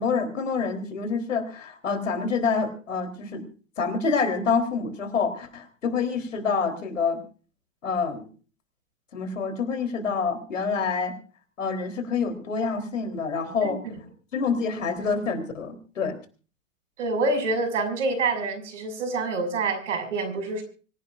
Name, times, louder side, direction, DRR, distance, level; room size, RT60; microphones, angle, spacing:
voice 1, 0.0-3.4 3.8-7.2 7.8-8.3 9.1-11.1 11.6-13.8 14.3-16.2, left 5 dB, 75° left, 7 dB, 3.9 m, -27 dB
voice 2, 17.0-20.6, right 3 dB, 65° right, 7 dB, 6.6 m, -26 dB
25.0 x 16.5 x 2.6 m, 0.39 s
figure-of-eight pair, 105°, 39 cm